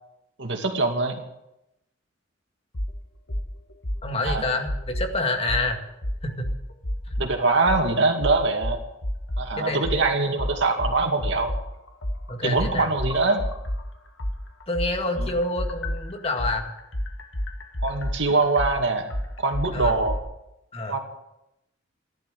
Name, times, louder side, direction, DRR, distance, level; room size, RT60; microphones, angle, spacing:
voice 1, 0.4-1.2 4.3-4.4 7.2-8.8 9.4-11.5 12.4-13.4 15.2-15.3 17.8-19.1 19.4-20.2 20.9-21.0, right 3 dB, 70° right, 3 dB, 2.4 m, -23 dB
sound 1, 2.7-2.9 3.3-3.5 3.8-5.1 5.5-5.7 6.0-7.3 7.7-7.8 8.2-9.5 9.8-13.8 14.2-20.2, equal, 85° left, 1.9 m, -29 dB
voice 2, 4.0-5.8 6.2-6.5 9.6-10.0 12.3-12.9 14.7-16.7 19.7-19.9 20.7-21.0, left 2 dB, 30° left, 4 dB, 2.1 m, -28 dB
14.5 x 11.5 x 7.9 m, 0.87 s
head